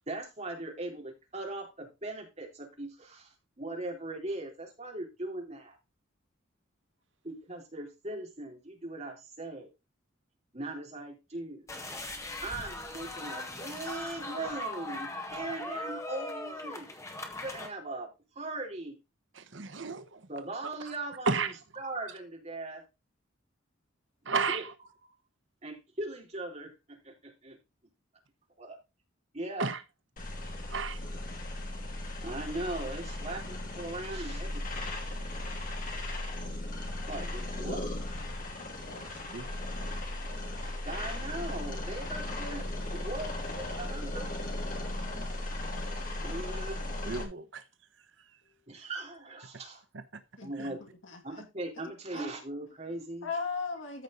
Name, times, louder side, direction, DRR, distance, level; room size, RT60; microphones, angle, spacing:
voice 1, 0.1-5.8 7.2-9.7 10.5-11.7 12.4-16.9 17.3-18.1 18.4-19.0 20.3-21.3 21.8-22.8 24.5-24.6 25.6-27.6 28.6-28.8 29.3-29.7 32.2-34.6 37.1-37.9 40.9-44.3 46.2-46.8 48.7-49.8 50.4-50.8 51.2-53.3, right 2 dB, 35° right, 3.8 m, -39 dB
sound 1, 11.7-17.7, left 2 dB, 15° left, 1.8 m, -39 dB
voice 2, 19.3-20.3 20.9-21.0 21.3-21.6 24.2-24.7 29.6-29.8 30.6-31.1 35.6-35.7 38.8-39.5 44.9-45.3 47.0-47.6 48.2-48.3 49.9-50.2 50.6-50.7, right 4 dB, 65° right, 0.9 m, -34 dB
sound 2, 30.2-47.2, left 1 dB, 45° left, 3.0 m, -37 dB
voice 3, 50.4-51.4 52.1-52.4 53.2-54.0, left 4 dB, 70° left, 2.4 m, -37 dB
14.0 x 5.3 x 3.9 m
head